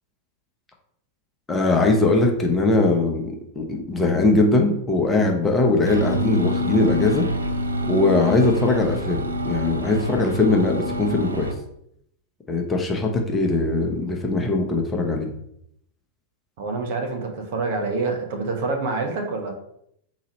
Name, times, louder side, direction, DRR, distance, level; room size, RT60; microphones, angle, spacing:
voice 1, 1.5-7.3 7.9-11.5 12.5-15.3, left 2 dB, 15° left, 1 dB, 0.8 m, -21 dB
sound 1, 5.8-11.5, left 1 dB, 80° right, 0.5 m, -26 dB
voice 2, 16.6-19.6, right 3 dB, 50° right, 3 dB, 0.9 m, -26 dB
4.0 x 3.0 x 4.0 m, 0.74 s
figure-of-eight pair, 90°, 0 cm